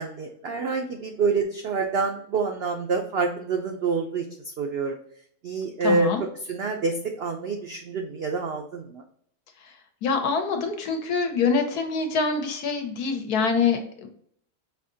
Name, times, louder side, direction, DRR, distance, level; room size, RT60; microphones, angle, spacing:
voice 1, 0.0-4.2 4.6-5.0 5.4-6.1 6.5-9.0, right 4 dB, 80° right, 3 dB, 0.5 m, -27 dB
voice 2, 5.8-6.2 10.0-14.1, left 5 dB, 80° left, 5 dB, 1.3 m, -25 dB
5.7 x 2.7 x 2.6 m, 0.66 s
omnidirectional pair, 1.6 m